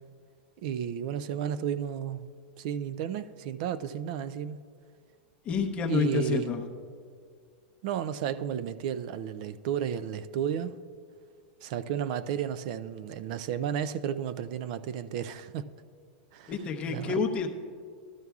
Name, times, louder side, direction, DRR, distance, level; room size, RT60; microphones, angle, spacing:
voice 1, 0.6-2.3 2.6-4.6 5.9-6.5 7.8-10.8 11.6-15.7 16.3-16.5 16.9-17.2, right 9 dB, 45° right, 0.3 m, -32 dB
voice 2, 5.4-6.6 16.5-17.5, left 6 dB, 20° left, 0.8 m, -28 dB
14.0 x 12.5 x 2.4 m
supercardioid pair, 160°, 6 cm